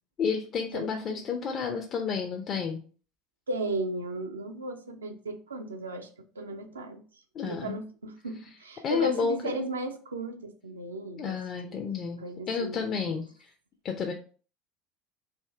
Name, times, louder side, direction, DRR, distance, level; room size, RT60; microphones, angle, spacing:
voice 1, 0.2-2.8 7.3-7.8 8.8-9.7 11.2-13.5 13.8-14.1, left 6 dB, 40° left, 3 dB, 0.5 m, -31 dB
voice 2, 0.7-1.2 3.5-6.1 6.4-7.0 7.4-11.4 11.6-11.9 12.2-13.2, right 1 dB, 85° right, 6 dB, 0.5 m, -35 dB
3.5 x 2.6 x 3.3 m, 0.40 s
hypercardioid pair, 70°, 0 cm